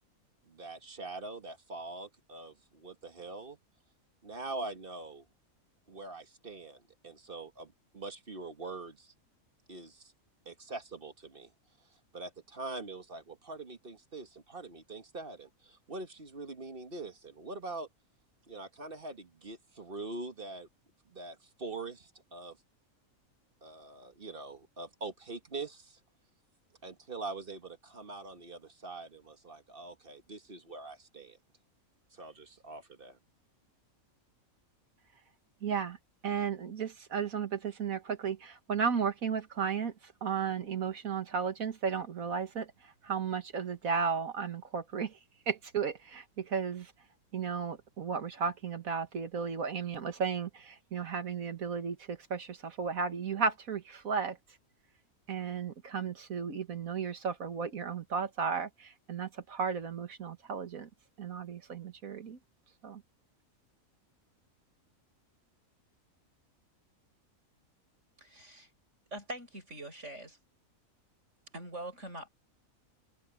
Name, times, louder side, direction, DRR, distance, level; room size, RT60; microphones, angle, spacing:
voice 1, 0.5-3.6 4.2-5.3 5.9-9.1 9.7-10.1 10.5-11.5 11.9-17.9 18.5-20.7 21.1-22.6 23.6-26.0 26.8-31.4 32.1-33.2, right 3 dB, 40° right, 1.8 m, -43 dB
voice 2, 35.6-36.0 36.2-45.2 45.5-46.9 47.3-54.4 55.3-60.9 61.2-62.4 62.8-63.0, right 6 dB, 75° right, 2.1 m, -34 dB
voice 3, 68.2-68.7 69.1-70.4 71.5-72.3, right 1 dB, 55° right, 7.9 m, -43 dB
omnidirectional pair, 1.5 m